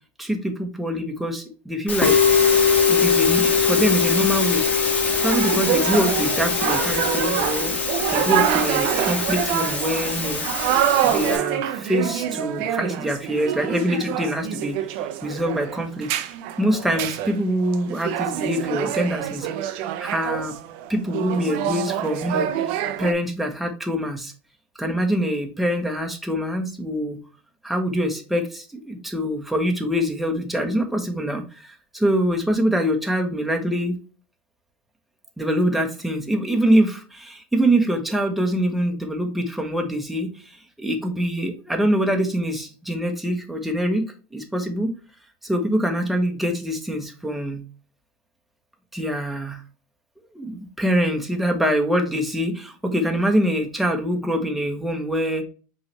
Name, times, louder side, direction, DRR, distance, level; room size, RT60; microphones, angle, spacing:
voice 1, 0.2-2.2 2.9-4.6 5.2-10.5 11.0-16.1 16.6-19.5 20.0-20.5 20.9-24.3 24.8-27.2 27.6-34.0 35.4-44.1 44.3-44.9 45.4-47.6 48.9-49.6 50.3-55.4, equal, ahead, 3 dB, 0.9 m, -24 dB
Musical instrument, 1.9-11.4, left 5 dB, 25° left, 1.6 m, -22 dB
sound 1, 5.2-23.1, right 11 dB, 65° right, 0.6 m, -26 dB
5.4 x 3.2 x 3.0 m, 0.36 s
supercardioid pair, 135°, 6 cm